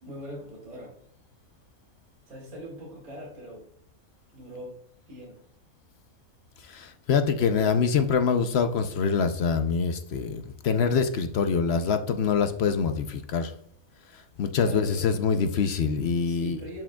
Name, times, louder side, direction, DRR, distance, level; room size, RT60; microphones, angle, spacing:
voice 1, 0.0-1.0 2.3-3.7 4.3-4.8 5.1-5.4 14.6-15.1 16.3-16.8, equal, 90° right, -2 dB, 2.6 m, -41 dB
voice 2, 6.6-13.5 14.1-16.6, left 6 dB, 60° left, 9 dB, 0.8 m, -25 dB
11.0 x 4.9 x 2.3 m, 0.70 s
omnidirectional pair, 1.4 m